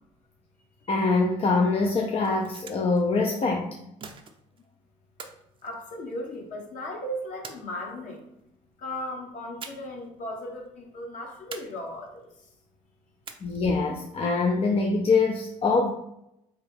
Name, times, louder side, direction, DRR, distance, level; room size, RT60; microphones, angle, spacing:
voice 1, 0.9-3.8 13.4-15.9, left 3 dB, 40° left, 2 dB, 0.5 m, -24 dB
sound 1, 2.1-3.0 4.0-4.6 5.2-6.4 7.4-8.2 9.6-10.1 10.3-10.4 11.5-12.2 13.2-13.8, right 5 dB, 35° right, 0.6 m, -45 dB
voice 2, 5.6-8.2 8.8-12.5, left 1 dB, 55° left, -1 dB, 1.3 m, -36 dB
3.4 x 3.2 x 3.4 m, 0.80 s
supercardioid pair, 70°, 15 cm